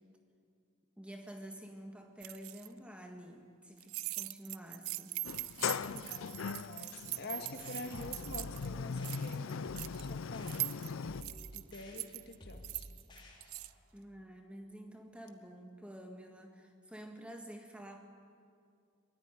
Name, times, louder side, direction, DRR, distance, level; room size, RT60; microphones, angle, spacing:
voice 1, 1.0-5.2 13.9-18.1, right 1 dB, 5° right, 4 dB, 1.7 m, -49 dB
sound 1, 2.2-2.7 3.8-8.7 8.9-10.1 10.5-13.7, right 19 dB, 90° right, 0.5 m, -42 dB
Sliding door, 5.2-11.2, left 6 dB, 70° left, 0.5 m, -40 dB
voice 2, 5.6-9.5 9.9-12.9, left 2 dB, 50° left, 5 dB, 1.7 m, -47 dB
sound 2, 7.6-13.8, equal, 20° left, 3.2 m, -52 dB
22.0 x 14.0 x 9.9 m, 2.4 s
head